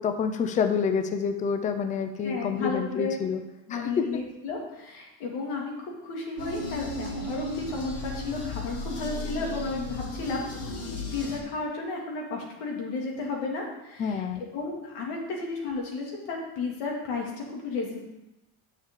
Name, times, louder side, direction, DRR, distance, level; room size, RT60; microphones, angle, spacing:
voice 1, 0.0-3.4 3.7-4.1 14.0-14.4, left 6 dB, 20° left, 7 dB, 0.4 m, -28 dB
voice 2, 2.2-3.2 3.7-10.4 10.9-18.0, left 3 dB, 85° left, -1 dB, 2.5 m, -33 dB
sound 1, 6.4-11.4, left 2 dB, 35° left, 1.3 m, -35 dB
10.0 x 6.6 x 3.8 m, 0.95 s
cardioid pair, 170°, 40 cm